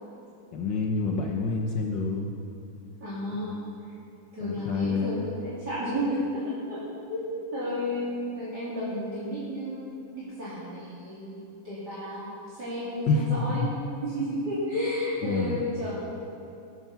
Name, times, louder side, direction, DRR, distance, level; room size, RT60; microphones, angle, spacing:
voice 1, 0.5-2.3 3.4-3.6 4.4-5.2 13.1-13.7 15.2-15.6, left 3 dB, 65° left, 1 dB, 1.5 m, -27 dB
voice 2, 3.0-3.6 4.3-6.4 6.7-6.8 7.1-9.8 10.1-11.4 11.6-12.3 12.5-13.7 14.0-16.3, equal, 50° right, -11 dB, 3.3 m, -32 dB
19.5 x 7.1 x 5.7 m, 2.6 s
omnidirectional pair, 2.4 m